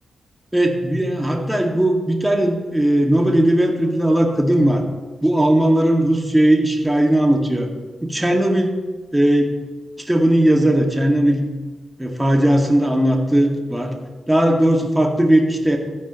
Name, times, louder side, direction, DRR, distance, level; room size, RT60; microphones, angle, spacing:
voice 1, 0.5-4.8 5.2-7.7 8.0-8.7 9.1-9.5 10.1-11.5 12.0-13.9 14.3-15.8, right 1 dB, 10° right, 1 dB, 2.1 m, -17 dB
15.0 x 8.9 x 3.1 m, 1.2 s
supercardioid pair, 45°, 0 cm